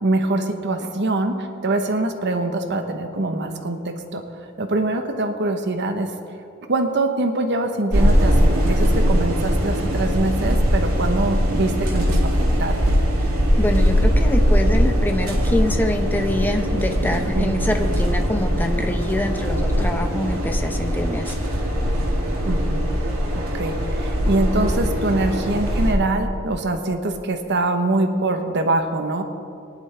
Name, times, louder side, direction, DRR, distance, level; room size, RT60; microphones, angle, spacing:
voice 1, 0.0-4.2 4.6-6.1 6.7-12.3 12.6-13.0 17.3-17.7 22.4-22.8 23.3-29.2, right 2 dB, 55° right, 6 dB, 1.0 m, -24 dB
sound 1, 7.9-25.9, equal, 85° right, 2.7 m, -20 dB
voice 2, 13.6-21.4, left 1 dB, 10° left, 4 dB, 0.8 m, -25 dB
19.5 x 11.0 x 3.4 m, 2.5 s
head